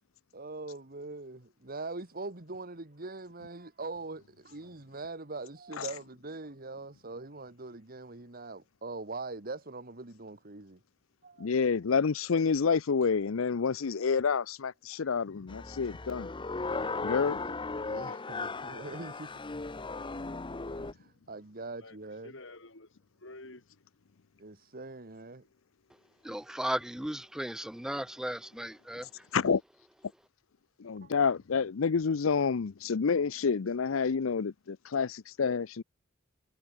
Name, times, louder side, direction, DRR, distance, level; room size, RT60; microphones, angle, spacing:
voice 1, 0.3-10.8 11.2-11.6 13.0-13.1 17.3-19.3 20.7-22.3 24.4-25.4 26.3-26.5 31.0-31.1, right 3 dB, 45° right, 2.0 m, -42 dB
voice 2, 11.4-16.3 17.0-17.4 29.3-29.6 30.8-35.8, left 5 dB, 90° left, 0.6 m, -28 dB
sound 1, 15.5-20.9, left 3 dB, 25° left, 0.8 m, -37 dB
voice 3, 21.8-23.8, left 2 dB, 65° left, 5.1 m, -50 dB
voice 4, 26.2-29.1, right 1 dB, 5° right, 0.4 m, -35 dB
head